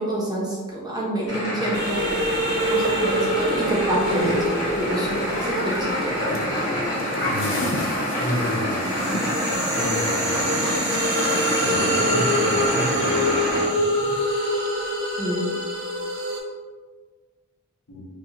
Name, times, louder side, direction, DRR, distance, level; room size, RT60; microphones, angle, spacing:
voice 1, 0.0-2.2 2.5-6.2 15.2-15.5, right 1 dB, 20° right, -4 dB, 0.7 m, -27 dB
sound 1, 1.3-13.6, equal, 15° left, 1.0 m, -27 dB
sound 2, 1.7-8.1 8.5-16.4, equal, 50° right, 0.8 m, -26 dB
Human group actions, 4.0-11.8, left 1 dB, 60° left, 0.5 m, -33 dB
voice 2, 7.2-7.9 8.2-8.8 9.7-10.4 11.6-14.1 17.9-18.0, equal, 80° left, -4 dB, 1.1 m, -30 dB
5.2 x 2.3 x 2.8 m, 1.4 s
head